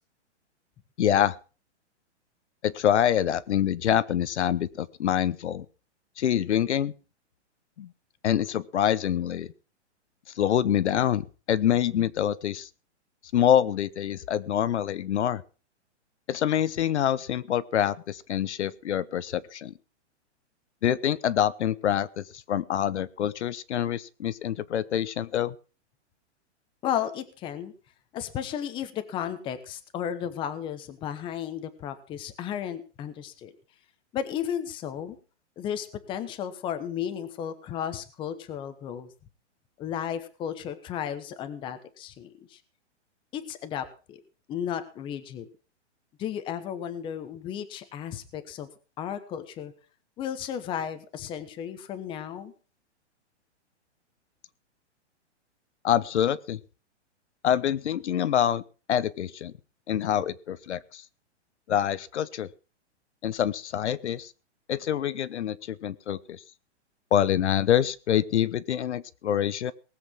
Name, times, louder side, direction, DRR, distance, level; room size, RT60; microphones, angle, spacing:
voice 1, 1.0-1.3 2.6-5.7 6.2-6.9 7.8-7.9 8.2-9.5 10.4-12.7 13.3-15.4 16.3-19.7 20.8-25.5 55.8-56.6 57.4-58.6 58.9-59.5 59.9-61.0 61.7-62.5 63.2-64.3 64.7-66.4 67.1-69.7, left 10 dB, 70° left, 16 dB, 1.0 m, -26 dB
voice 2, 26.8-27.7 28.1-33.5 34.1-35.2 35.6-39.1 39.8-42.6 43.3-44.2 44.5-45.5 46.2-48.7 49.0-49.7 50.2-52.5, left 9 dB, 15° left, 10 dB, 1.1 m, -34 dB
19.0 x 8.0 x 6.2 m, 0.36 s
hypercardioid pair, 165°, 36 cm